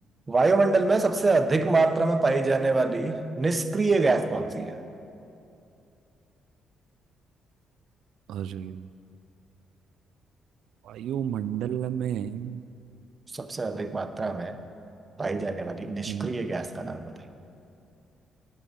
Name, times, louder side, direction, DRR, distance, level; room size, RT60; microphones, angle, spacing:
voice 1, 0.3-4.8 13.3-14.6 15.2-17.2, right 3 dB, 25° right, 9 dB, 0.7 m, -25 dB
voice 2, 8.3-8.8 10.9-12.6 16.1-16.4, right 9 dB, 80° right, 15 dB, 0.3 m, -31 dB
9.1 x 6.4 x 8.6 m, 2.7 s
cardioid pair, 90°, 0 cm